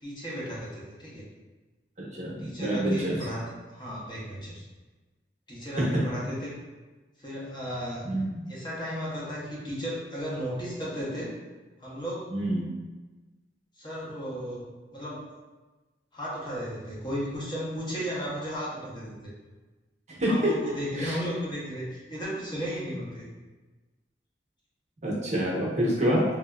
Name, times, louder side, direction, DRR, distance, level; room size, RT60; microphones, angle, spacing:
voice 1, 0.0-1.3 2.4-4.6 5.5-6.6 7.2-8.2 8.5-11.3 11.8-12.3 13.8-14.7 14.9-15.3 16.1-19.3 20.3-23.3, equal, 25° left, -6 dB, 0.8 m, -35 dB
voice 2, 2.0-3.2 8.0-8.4 12.3-12.7 20.2-20.5 21.0-21.2 25.0-26.2, equal, 40° right, -5 dB, 0.8 m, -27 dB
3.4 x 2.7 x 2.3 m, 1.2 s
head